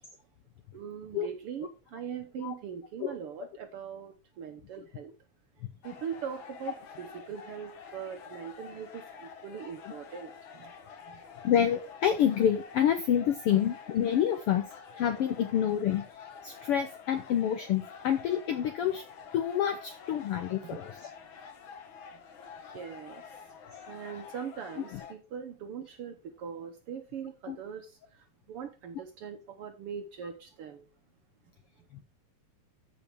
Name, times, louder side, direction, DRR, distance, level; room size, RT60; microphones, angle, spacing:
voice 1, 0.7-5.1 5.8-10.7 11.1-11.2 13.5-13.6 20.6-20.8 22.7-23.2 23.9-27.9 28.5-30.9, right 7 dB, 65° right, 6 dB, 1.5 m, -41 dB
sound 1, 5.8-25.1, left 6 dB, 55° left, 1.6 m, -48 dB
voice 2, 11.4-14.7 15.0-16.0 16.4-19.0 19.3-20.9 24.9-25.0 27.5-27.6, left 9 dB, 75° left, 8 dB, 1.3 m, -27 dB
13.5 x 5.1 x 3.5 m, 0.30 s
omnidirectional pair, 3.4 m